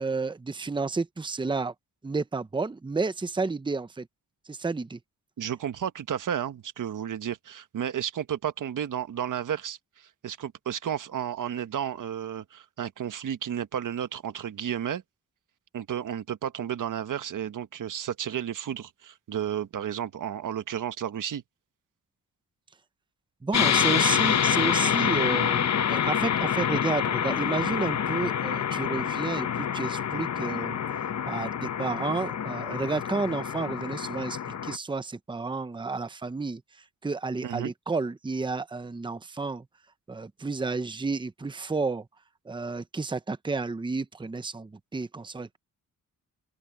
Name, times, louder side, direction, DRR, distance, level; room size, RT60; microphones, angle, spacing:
voice 1, 0.0-1.7 2.0-4.1 4.5-5.0 23.4-30.8 31.3-36.6 37.0-39.6 40.1-42.1 42.4-45.6, right 3 dB, 15° right, 0.8 m, -31 dB
voice 2, 5.4-15.0 15.7-21.4 37.4-37.7, right 9 dB, 65° right, 1.3 m, -32 dB
sound 1, 23.5-34.8, left 8 dB, 55° left, 1.0 m, -27 dB
open air
wide cardioid pair, 120°, 33 cm